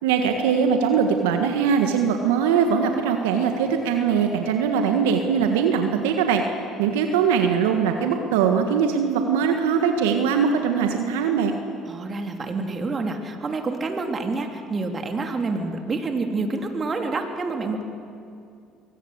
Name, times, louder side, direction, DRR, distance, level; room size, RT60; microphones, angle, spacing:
voice 1, 0.0-6.4 6.8-11.5, right 6 dB, 80° right, 5 dB, 1.6 m, -21 dB
voice 2, 11.8-17.8, right 3 dB, 35° right, 4 dB, 3.4 m, -28 dB
23.5 x 18.5 x 8.1 m, 2.4 s
hypercardioid pair, 65°, 0 cm